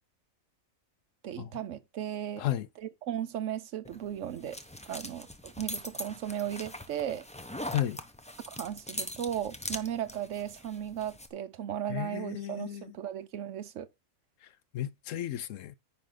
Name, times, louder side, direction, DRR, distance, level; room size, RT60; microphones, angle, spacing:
voice 1, 1.2-2.5 3.0-4.6 4.9-7.2 8.5-13.9, right 10 dB, 65° right, 1.1 m, -36 dB
voice 2, 2.4-2.7 7.7-8.0 11.9-12.9 14.4-14.5 14.7-15.8, left 12 dB, 70° left, 0.9 m, -33 dB
sound 1, 3.8-11.3, left 1 dB, 5° left, 0.6 m, -42 dB
9.8 x 5.3 x 3.8 m
omnidirectional pair, 1.4 m